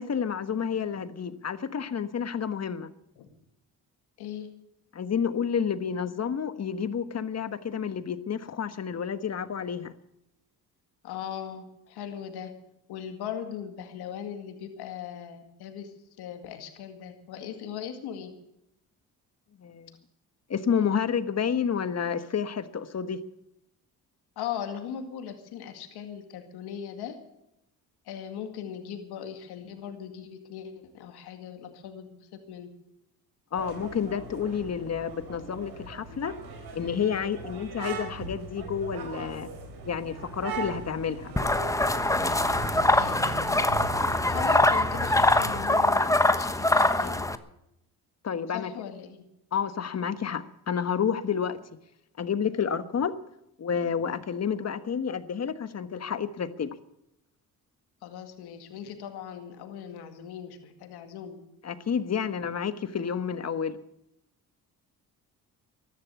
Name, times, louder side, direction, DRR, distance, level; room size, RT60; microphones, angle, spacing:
voice 1, 0.0-2.9 4.9-9.9 19.6-20.0 20.5-23.2 33.5-36.4 36.7-39.5 39.8-41.3 48.2-48.7 49.5-51.6 52.2-53.2 53.6-56.8 61.6-63.8, left 7 dB, 40° left, 12 dB, 1.3 m, -30 dB
voice 2, 11.0-12.5 12.9-18.3 24.4-27.2 28.1-32.7 42.9-43.4 44.3-47.3 48.5-49.3 58.0-61.4, left 9 dB, 85° left, 6 dB, 2.2 m, -39 dB
sound 1, 33.5-45.7, right 4 dB, 80° right, 4.1 m, -39 dB
sound 2, 41.4-47.4, left 2 dB, 10° left, 1.1 m, -23 dB
14.0 x 11.5 x 8.3 m, 0.83 s
cardioid pair, 75°, 38 cm